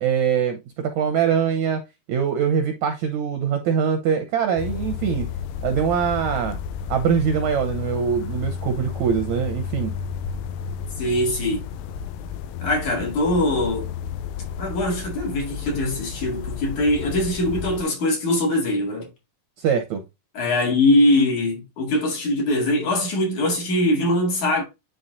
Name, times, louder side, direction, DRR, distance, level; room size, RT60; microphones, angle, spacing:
voice 1, 0.0-1.8 2.1-5.3 5.6-6.6 6.9-9.9 19.6-20.0, right 7 dB, 75° right, 1.7 m, -23 dB
sound 1, 4.6-17.8, left 7 dB, 85° left, 1.7 m, -32 dB
voice 2, 11.0-11.6 12.6-13.9 14.6-19.1 20.4-24.6, left 1 dB, 55° left, 3.4 m, -22 dB
10.0 x 4.0 x 2.5 m
omnidirectional pair, 4.2 m